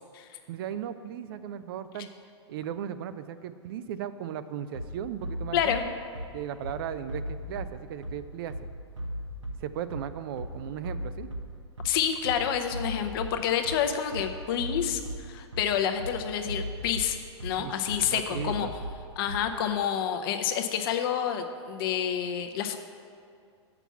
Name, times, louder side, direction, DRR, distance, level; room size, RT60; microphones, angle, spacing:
voice 1, 0.5-2.1 2.5-5.9 6.3-8.7 9.6-11.3 17.6-17.7 18.0-18.7, right 9 dB, 50° right, 12 dB, 0.4 m, -36 dB
Bass drum, 4.7-19.7, equal, 85° right, 1.2 m, -38 dB
voice 2, 5.5-5.8 11.8-17.2 17.4-18.7 19.2-22.8, left 8 dB, 50° left, 6 dB, 0.8 m, -28 dB
8.0 x 5.9 x 5.8 m, 2.3 s
figure-of-eight pair, 100°, 15 cm